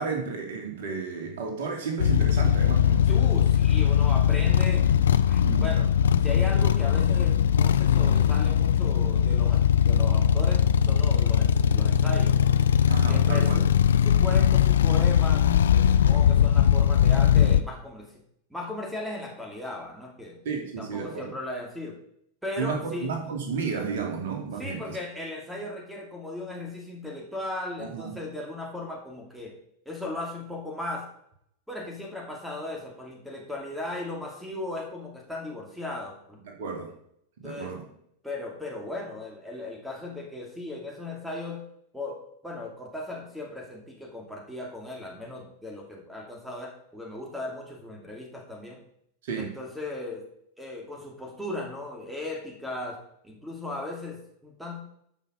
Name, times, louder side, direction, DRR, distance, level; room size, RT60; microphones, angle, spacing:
voice 1, 0.0-3.1 5.4-5.7 12.9-13.6 20.4-21.3 22.6-25.0 27.8-28.1 36.5-36.9 37.4-37.9 49.2-49.5, right 5 dB, 55° right, 2 dB, 2.6 m, -32 dB
sound 1, 2.0-17.6, left 9 dB, 65° left, 0.5 m, -20 dB
voice 2, 3.1-4.9 5.3-5.9 6.2-12.6 13.1-13.7 14.0-15.4 15.7-18.1 18.5-20.4 20.8-21.9 22.4-23.2 24.6-29.5 29.9-31.0 31.7-36.4 37.4-37.8 38.2-41.6 41.9-48.8 49.4-50.2 50.6-53.0 53.2-54.8, left 2 dB, 5° right, 0 dB, 2.4 m, -37 dB
12.5 x 5.7 x 5.1 m, 0.72 s
figure-of-eight pair, 90°, 0 cm